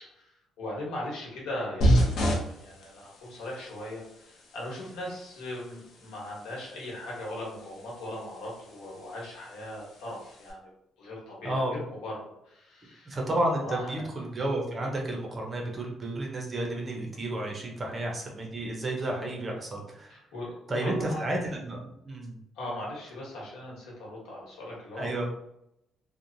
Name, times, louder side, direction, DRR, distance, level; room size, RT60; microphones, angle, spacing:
voice 1, 0.1-10.7 11.0-13.1 13.6-14.1 17.8-18.0 20.1-21.2 22.5-25.3, left 1 dB, 90° left, -4 dB, 1.2 m, -39 dB
sound 1, 1.8-10.5, equal, 60° left, 0.6 m, -32 dB
voice 2, 11.4-11.7 13.0-20.2 20.7-22.4 24.9-25.3, right 1 dB, 25° right, 0 dB, 0.5 m, -31 dB
2.9 x 2.0 x 2.5 m, 0.79 s
cardioid pair, 165°, 0 cm